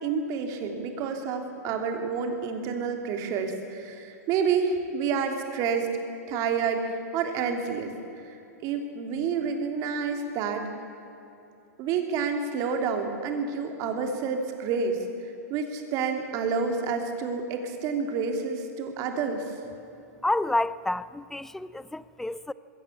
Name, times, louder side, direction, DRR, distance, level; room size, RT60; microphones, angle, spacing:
voice 1, 0.0-5.9 6.3-7.9 8.2-10.7 11.8-19.4, right 5 dB, 35° right, 4 dB, 3.1 m, -29 dB
voice 2, 20.2-22.5, left 2 dB, 5° left, 17 dB, 0.4 m, -29 dB
21.0 x 17.0 x 8.3 m, 2.9 s
hypercardioid pair, 135°, 9 cm